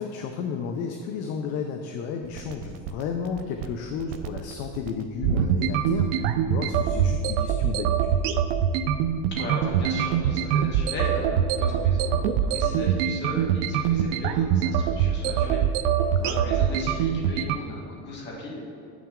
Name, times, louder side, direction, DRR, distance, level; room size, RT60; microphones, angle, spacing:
voice 1, 0.0-8.1 16.2-16.3, left 6 dB, 50° left, 5 dB, 0.5 m, -32 dB
sound 1, 2.2-17.6, right 8 dB, 90° right, 0.5 m, -24 dB
voice 2, 9.3-15.6 16.0-18.6, left 1 dB, 30° left, -4 dB, 1.7 m, -36 dB
7.6 x 6.0 x 3.6 m, 2.6 s
cardioid pair, 170°, 34 cm